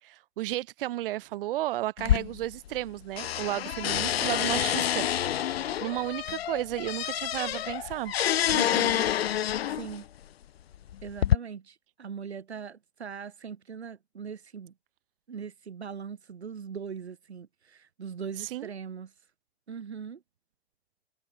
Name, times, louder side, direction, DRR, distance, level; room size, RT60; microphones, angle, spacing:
voice 1, 0.0-5.1 5.4-8.1 18.4-18.7, right 15 dB, 55° right, 2.3 m, -33 dB
sound 1, 2.0-2.9 3.2-10.0 10.7-11.4, left 11 dB, 70° left, 1.8 m, -28 dB
voice 2, 8.5-9.1 9.7-10.1 11.0-14.7 15.3-19.1 19.7-20.2, right 6 dB, 85° right, 4.2 m, -40 dB
hypercardioid pair, 120°, 32 cm